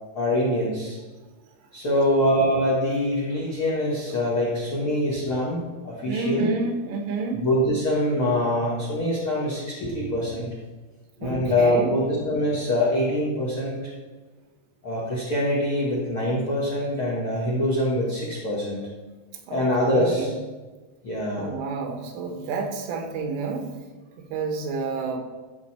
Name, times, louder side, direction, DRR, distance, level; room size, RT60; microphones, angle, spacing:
voice 1, 0.1-1.0 1.7-6.5 7.3-10.5 11.2-13.8 14.8-18.9 19.5-20.3 21.0-21.5, left 1 dB, 65° left, -5 dB, 1.3 m, -24 dB
voice 2, 6.0-7.5 11.2-11.9 19.5-20.3 21.4-23.7 24.2-25.2, right 4 dB, 90° right, 4 dB, 3.8 m, -29 dB
13.0 x 7.1 x 4.4 m, 1.3 s
omnidirectional pair, 5.6 m